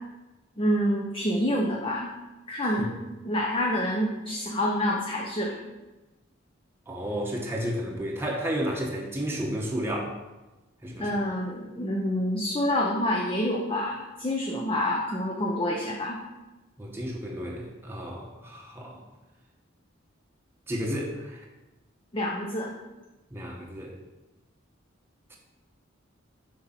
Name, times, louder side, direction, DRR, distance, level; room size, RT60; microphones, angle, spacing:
voice 1, 0.6-2.1 2.5-5.6 11.0-16.2 22.1-22.7, left 1 dB, 25° left, -1 dB, 0.8 m, -27 dB
voice 2, 6.9-10.1 10.8-11.2 16.8-19.0 20.7-21.4 23.3-24.0 25.3-25.4, equal, 10° right, -1 dB, 1.0 m, -32 dB
6.3 x 4.5 x 5.8 m, 1.1 s
head